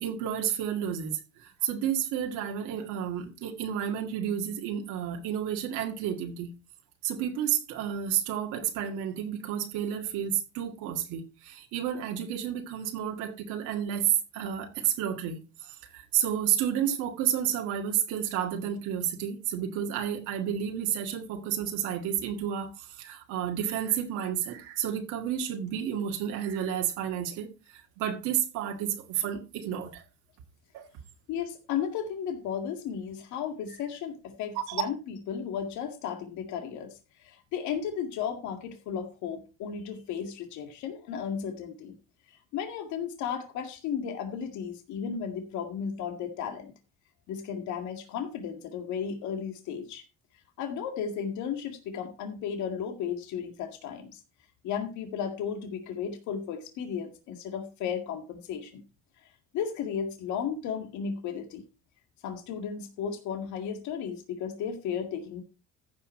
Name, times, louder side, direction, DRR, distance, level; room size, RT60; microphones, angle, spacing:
voice 1, 0.0-6.5 7.0-30.0 30.7-30.9 34.6-34.8, right 9 dB, 85° right, 2.0 m, -31 dB
voice 2, 31.3-41.9 42.5-46.7 47.3-50.0 50.6-54.2 54.6-58.8 59.5-61.7 62.2-65.4, left 7 dB, 75° left, 2.0 m, -34 dB
14.5 x 5.9 x 4.3 m
cardioid pair, 110°, 29 cm